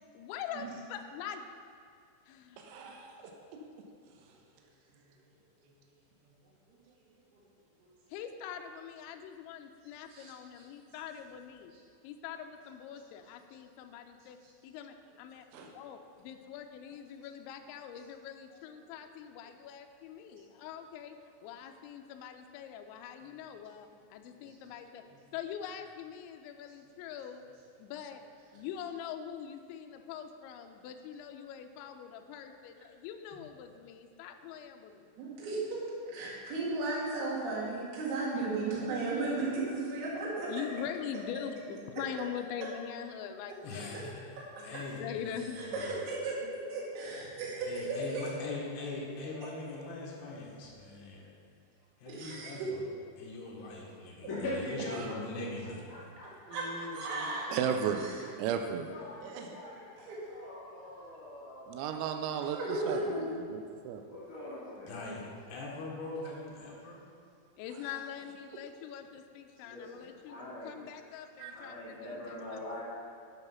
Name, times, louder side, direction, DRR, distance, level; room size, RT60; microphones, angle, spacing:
voice 1, 0.1-1.4 2.3-2.6 8.1-11.7 12.0-14.4 14.6-15.5 15.8-25.0 25.3-27.4 27.8-28.2 28.5-35.1 40.5-44.1 44.6-45.6 46.4-46.5 67.6-72.8, left 8 dB, 85° left, 5 dB, 2.6 m, -43 dB
voice 2, 2.6-3.3 4.0-4.4 15.5-15.7 16.9-17.0 54.9-55.2 56.5-57.8 59.2-59.6 67.7-68.6, right 2 dB, 75° right, 1 dB, 2.8 m, -48 dB
voice 3, 35.2-40.5 45.6-46.4 46.7-48.3 52.1-52.7 56.5-56.7 56.9-57.5 58.0-58.1 60.0-60.2 62.4-63.2, right 3 dB, 60° right, -6 dB, 3.6 m, -35 dB
voice 4, 43.6-44.1 44.6-45.9 47.7-51.3 52.0-52.8 53.2-54.3 54.7-55.9 64.8-65.2 65.5-67.0 71.5-71.6, left 2 dB, 65° left, -3 dB, 3.3 m, -41 dB
voice 5, 54.3-55.2 55.6-58.0 58.9-59.2 59.5-61.8 64.1-65.1 69.6-70.7 71.5-72.8, left 1 dB, 30° left, -11 dB, 1.6 m, -43 dB
voice 6, 57.5-58.0 58.4-58.9 61.7-63.0 63.5-64.0 71.4-71.5, right 8 dB, 90° right, 5 dB, 3.4 m, -33 dB
9.7 x 7.1 x 5.6 m, 2.3 s
omnidirectional pair, 5.9 m